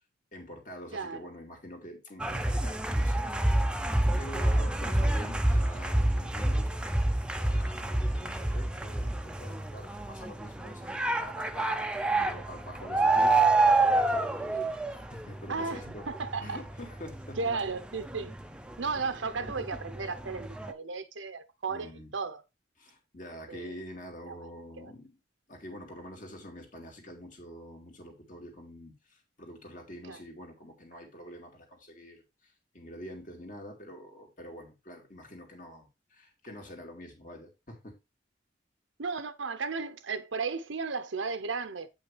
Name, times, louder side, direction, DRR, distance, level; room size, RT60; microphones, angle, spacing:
voice 1, 0.3-3.4 4.2-11.7 12.2-13.4 13.7-14.6 14.9-16.0 16.4-17.4 21.7-22.1 22.8-25.2 25.5-37.9, equal, 45° left, 2.4 m, -46 dB
voice 2, 0.9-1.3 15.5-16.6 17.4-18.4 18.8-22.4 23.5-23.8 24.3-24.5 24.8-24.9 30.1-30.2 39.0-41.9, right 4 dB, 90° right, 0.8 m, -35 dB
sound 1, 2.2-19.0 19.3-20.7, right 2 dB, 5° right, 0.6 m, -28 dB
8.6 x 5.6 x 3.3 m
head